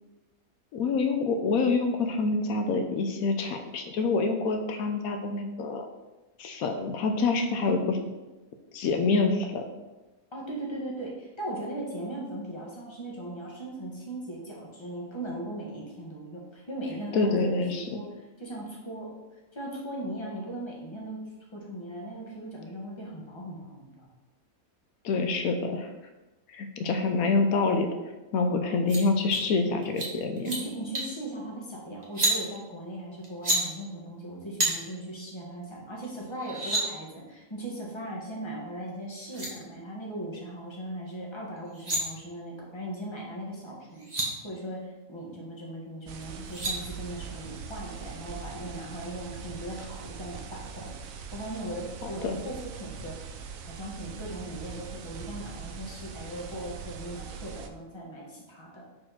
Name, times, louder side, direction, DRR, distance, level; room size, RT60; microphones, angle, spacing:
voice 1, 0.7-5.9 6.4-8.0 8.7-9.6 17.1-17.9 25.0-25.9 26.5-27.9 28.3-30.5 52.0-52.4, left 3 dB, 85° left, 5 dB, 1.1 m, -26 dB
voice 2, 10.3-19.1 19.5-21.2 21.5-24.1 30.4-44.1 44.4-50.9 51.3-53.2 53.7-58.8, right 1 dB, 20° left, -3 dB, 1.5 m, -38 dB
sound 1, 28.9-29.0 29.3-29.4 29.8-30.1 30.4-30.6 30.9-31.2 32.0-32.4 33.2-33.6 34.6-34.7 36.0-36.1 36.3-36.8 38.9-39.0 39.2-39.5 41.6-42.0 43.7-43.8 43.9-44.3 46.2-46.7, right 1 dB, 30° right, 1.4 m, -28 dB
sound 2, 46.1-57.7, right 6 dB, 75° right, 1.0 m, -42 dB
4.9 x 4.3 x 5.7 m, 1.1 s
omnidirectional pair, 1.5 m